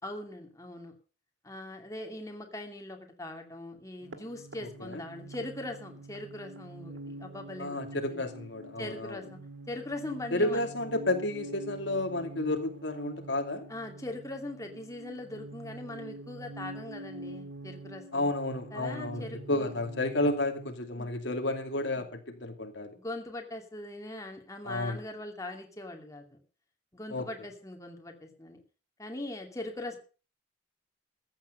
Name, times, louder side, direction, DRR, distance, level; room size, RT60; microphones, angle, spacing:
voice 1, 0.0-0.9 1.4-7.8 8.1-8.3 8.8-9.4 9.7-10.7 13.7-18.3 18.7-19.8 21.0-21.1 22.0-22.1 22.8-26.4 26.9-28.6 29.0-30.0, left 1 dB, 20° left, 3 dB, 2.6 m, -41 dB
sound 1, 4.0-20.7, right 2 dB, 85° right, 1.8 m, -46 dB
voice 2, 7.6-9.2 10.3-13.6 18.1-19.2 19.5-22.9 24.6-25.0 27.1-27.3, left 2 dB, 70° left, 5 dB, 2.5 m, -31 dB
15.0 x 9.1 x 6.5 m, 0.37 s
head